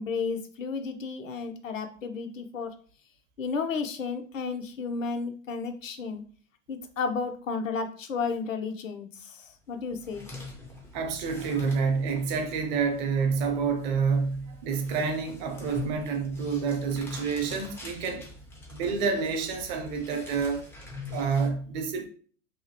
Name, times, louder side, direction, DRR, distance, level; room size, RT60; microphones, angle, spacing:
voice 1, 0.0-2.7 3.4-6.2 6.7-10.3, left 5 dB, 75° left, 0.6 m, -33 dB
sound 1, 9.7-21.5, left 3 dB, 5° left, 0.4 m, -44 dB
voice 2, 10.9-18.3 18.7-20.7 21.1-22.1, right 5 dB, 35° right, 0.6 m, -28 dB
2.8 x 2.4 x 2.8 m
figure-of-eight pair, 100°, 39 cm